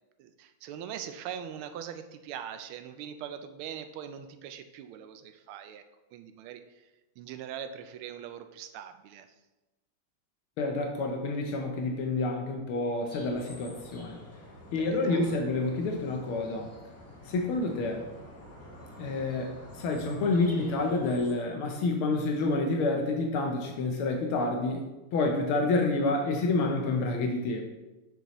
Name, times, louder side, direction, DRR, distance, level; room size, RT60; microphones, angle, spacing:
voice 1, 0.2-5.8 6.1-6.6 7.2-9.3 14.8-15.4, right 9 dB, 80° right, 8 dB, 1.4 m, -41 dB
voice 2, 10.6-14.2 14.7-16.7 17.3-18.0 19.0-24.8 25.1-27.6, left 2 dB, 75° left, 2 dB, 1.6 m, -28 dB
sound 1, 13.1-21.3, equal, 10° left, 0.9 m, -48 dB
6.8 x 6.2 x 3.0 m, 1.1 s
omnidirectional pair, 2.4 m